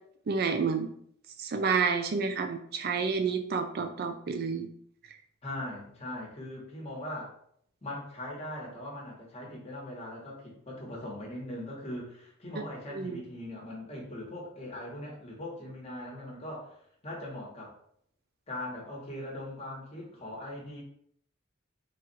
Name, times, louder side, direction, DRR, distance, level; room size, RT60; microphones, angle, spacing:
voice 1, 0.3-0.9 1.4-4.7 12.9-13.2, right 5 dB, 50° right, 7 dB, 0.4 m, -29 dB
voice 2, 5.4-7.3 7.8-17.7 18.5-20.8, left 1 dB, 30° left, -2 dB, 1.3 m, -40 dB
4.0 x 2.4 x 4.0 m, 0.65 s
head